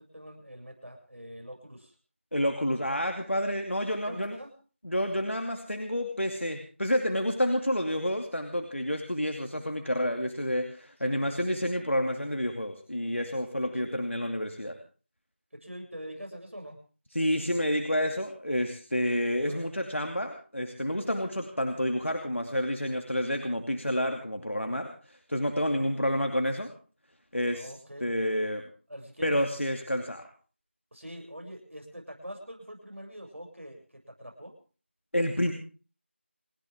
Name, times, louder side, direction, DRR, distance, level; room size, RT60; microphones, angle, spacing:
voice 1, 0.0-1.9 4.0-4.5 11.3-11.4 13.8-14.0 15.5-16.8 19.5-19.7 25.7-26.1 27.5-28.3 28.9-29.4 30.9-34.5, equal, 80° right, 2 dB, 7.5 m, -44 dB
voice 2, 2.3-4.4 4.8-14.8 17.1-26.7 27.3-27.7 28.0-28.6 29.2-30.3 35.1-35.5, equal, 80° left, 4 dB, 2.7 m, -29 dB
29.5 x 11.0 x 3.7 m, 0.38 s
figure-of-eight pair, 180°, 7 cm